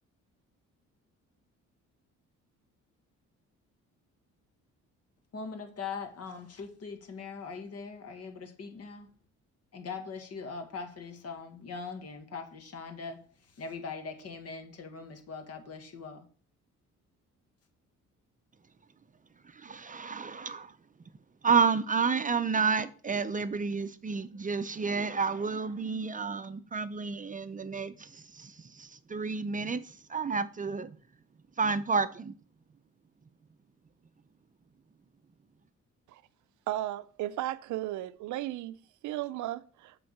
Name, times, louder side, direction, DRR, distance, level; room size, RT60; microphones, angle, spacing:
voice 1, 5.3-9.1 9.7-16.3, left 5 dB, 55° left, 1.7 m, -41 dB
voice 2, 19.5-20.7 21.4-31.0 31.6-32.3, right 5 dB, 25° right, 0.6 m, -30 dB
voice 3, 36.7-40.0, right 14 dB, 75° right, 0.5 m, -35 dB
7.8 x 3.8 x 6.5 m
cardioid pair, 90°, 30 cm